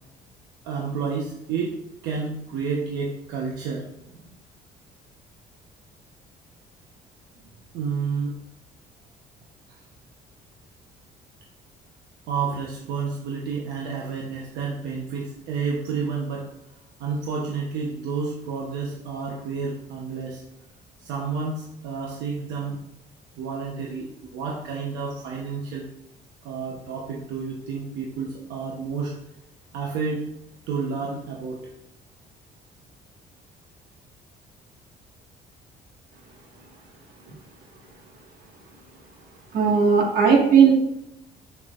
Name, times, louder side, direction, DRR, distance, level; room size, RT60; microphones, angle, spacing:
voice 1, 0.6-3.9 4.1-4.2 7.7-8.4 9.7-9.8 12.3-16.5 17.0-20.4 21.0-22.8 23.4-25.9 26.4-29.2 29.7-30.3 30.7-31.6, right 5 dB, 85° right, -2 dB, 1.0 m, -30 dB
voice 2, 39.5-40.7, right 6 dB, 65° right, 0 dB, 1.8 m, -16 dB
7.2 x 6.1 x 2.5 m, 0.81 s
cardioid pair, 110°, 17 cm